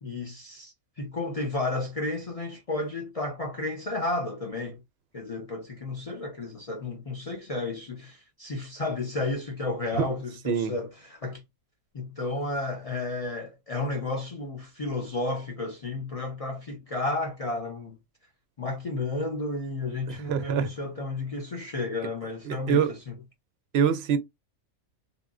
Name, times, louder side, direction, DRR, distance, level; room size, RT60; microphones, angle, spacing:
voice 1, 0.0-4.8 5.1-11.4 11.9-17.9 18.6-23.1, left 2 dB, 70° left, 0.3 m, -32 dB
voice 2, 20.1-20.7 22.5-22.9 23.7-24.2, right 7 dB, 60° right, 0.7 m, -25 dB
3.5 x 2.4 x 2.4 m
omnidirectional pair, 1.4 m